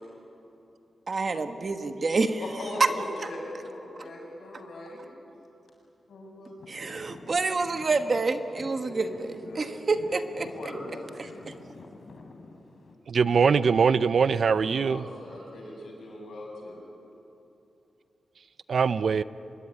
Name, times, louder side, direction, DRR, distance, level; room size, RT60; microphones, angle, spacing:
voice 1, 1.1-2.4 2.8-2.9 6.7-10.5 11.2-11.5, right 3 dB, 35° right, 1.2 m, -27 dB
voice 2, 2.4-5.0 6.1-6.5 8.8-9.6 10.0-11.5 14.6-16.8, left 1 dB, 75° left, 7.6 m, -40 dB
Traffic noise roadway noise / Engine, 6.6-12.9, left 3 dB, 50° left, 3.3 m, -49 dB
voice 3, 13.1-15.1 18.7-19.2, right 6 dB, 50° right, 0.5 m, -22 dB
25.0 x 21.5 x 9.9 m
wide cardioid pair, 175°, 0 cm